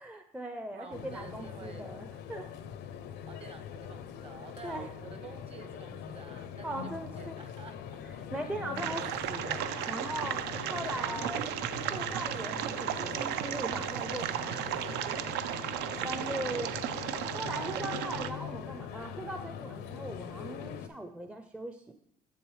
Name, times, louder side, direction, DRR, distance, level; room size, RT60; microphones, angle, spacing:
voice 1, 0.0-2.5 4.6-4.9 6.6-7.4 8.0-11.5 11.9-15.2 16.0-16.7 17.3-21.9, right 1 dB, 5° right, 6 dB, 0.4 m, -40 dB
voice 2, 0.7-1.9 3.3-8.0 8.4-8.5 10.8-11.5 16.1-16.6, right 5 dB, 35° right, 7 dB, 0.9 m, -50 dB
sound 1, 0.9-20.9, left 8 dB, 75° left, 0.5 m, -42 dB
sound 2, 8.8-18.3, right 11 dB, 85° right, 0.4 m, -35 dB
7.0 x 6.8 x 3.2 m, 0.75 s
cardioid pair, 110°, 17 cm